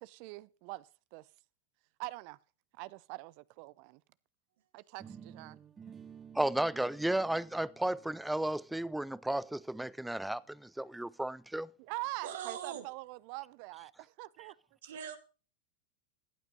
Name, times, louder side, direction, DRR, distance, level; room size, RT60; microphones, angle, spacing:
voice 1, 0.0-1.2 2.0-2.4 2.7-4.0 4.7-5.6 11.8-14.6, right 22 dB, 55° right, 0.6 m, -44 dB
sound 1, 5.0-10.9, right 7 dB, 25° right, 1.6 m, -55 dB
voice 2, 6.3-11.7, right 1 dB, 5° right, 0.6 m, -33 dB
voice 3, 12.2-12.9 14.8-15.2, right 9 dB, 75° right, 2.2 m, -41 dB
15.0 x 8.9 x 5.2 m
hypercardioid pair, 105°, 0 cm